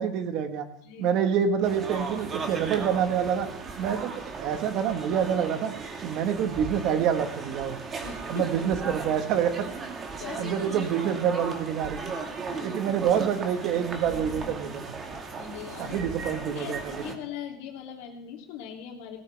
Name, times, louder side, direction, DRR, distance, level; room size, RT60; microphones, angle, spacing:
voice 1, 0.0-0.7 1.0-3.5 3.8-5.7 6.0-7.8 8.3-9.7 10.4-12.1 12.6-14.9 15.8-16.9, right 8 dB, 50° right, 7 dB, 1.5 m, -27 dB
voice 2, 0.8-1.1 8.0-8.5 10.2-10.8 12.5-12.7 15.4-19.2, left 8 dB, 65° left, 1 dB, 2.9 m, -40 dB
sound 1, 1.6-17.2, right 4 dB, 25° right, 1.9 m, -37 dB
17.5 x 14.0 x 3.5 m, 0.73 s
supercardioid pair, 145°, 0 cm